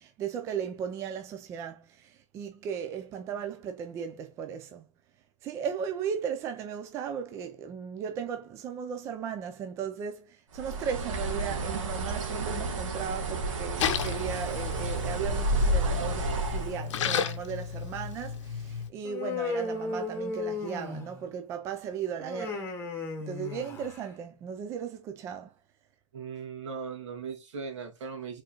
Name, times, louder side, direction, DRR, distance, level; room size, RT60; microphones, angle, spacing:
voice 1, 0.0-4.9 5.4-22.7 23.3-25.5, right 7 dB, 15° right, 0.4 m, -36 dB
Bird, 10.5-16.8, right 1 dB, 85° right, 1.7 m, -30 dB
Splash splatter, 13.8-18.9, left 8 dB, 70° left, 0.8 m, -34 dB
Human voice, 19.0-21.3 22.2-24.1, left 3 dB, 15° left, 1.1 m, -35 dB
voice 2, 26.1-28.4, right 5 dB, 70° right, 2.1 m, -38 dB
4.7 x 3.7 x 2.9 m
hypercardioid pair, 155°, 16 cm